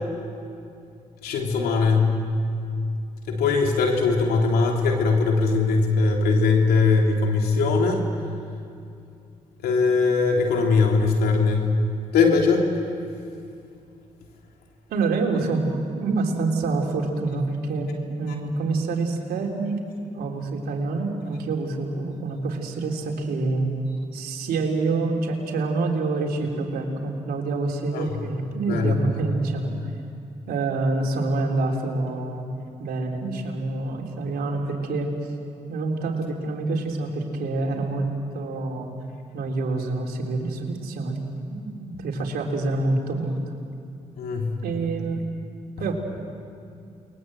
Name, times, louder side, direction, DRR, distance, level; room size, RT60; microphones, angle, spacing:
voice 1, 1.2-2.1 3.3-8.0 9.6-11.7 12.1-12.6 27.9-28.0 28.7-29.0 44.2-44.5, left 4 dB, 85° left, 1 dB, 3.4 m, -20 dB
voice 2, 14.9-15.6 15.9-17.9 18.2-19.8 20.1-23.7 24.1-29.7 30.5-32.4 32.8-35.1 35.7-38.1 38.3-38.9 39.3-41.2 41.5-43.4 44.6-45.2 45.8-45.9, right 3 dB, 80° right, 1 dB, 3.6 m, -26 dB
29.0 x 22.0 x 7.9 m, 2.5 s
supercardioid pair, 50°, 16 cm